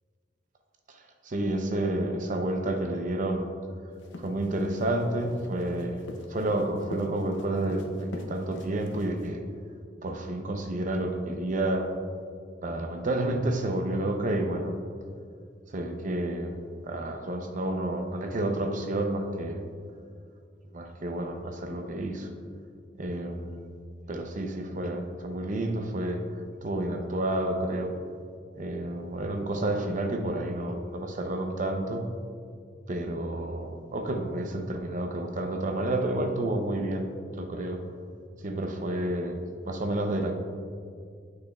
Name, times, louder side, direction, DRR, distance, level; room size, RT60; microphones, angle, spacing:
voice 1, 0.9-3.4 4.2-6.0 6.3-9.4 10.0-11.9 12.6-14.8 15.7-16.5 16.8-19.7 20.7-22.3 23.0-23.7 24.1-27.9 28.5-32.0 32.9-37.1 37.4-37.8 38.4-39.4 39.6-40.4, right 1 dB, 45° right, 5 dB, 0.6 m, -30 dB
sound 1, 3.9-9.3, left 2 dB, 85° left, 0.6 m, -43 dB
8.4 x 6.4 x 2.3 m, 2.2 s
head